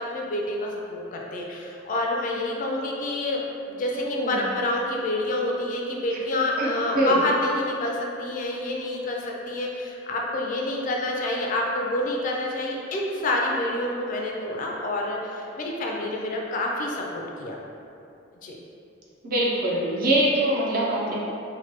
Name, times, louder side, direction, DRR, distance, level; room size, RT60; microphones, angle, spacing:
voice 1, 0.0-3.4 3.7-17.6 18.4-18.6, left 1 dB, 40° left, -1 dB, 0.3 m, -28 dB
voice 2, 3.9-4.4 6.6-7.2 19.2-21.1, right 1 dB, 45° right, -5 dB, 0.5 m, -24 dB
3.1 x 2.1 x 2.9 m, 2.7 s
head